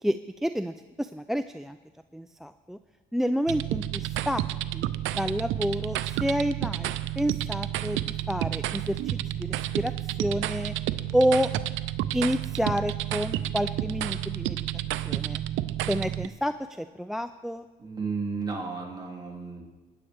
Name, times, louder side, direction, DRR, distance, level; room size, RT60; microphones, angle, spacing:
voice 1, 0.0-1.8 2.1-2.8 3.1-4.4 4.7-9.0 9.4-10.7 11.1-11.5 12.1-14.6 15.1-15.4 15.8-17.7, equal, ahead, 11 dB, 0.3 m, -29 dB
sound 1, 3.5-16.3, right 13 dB, 85° right, 0.5 m, -30 dB
voice 2, 17.8-19.6, right 4 dB, 20° right, -2 dB, 2.6 m, -33 dB
19.5 x 10.0 x 3.4 m, 1.3 s
cardioid pair, 90°, 20 cm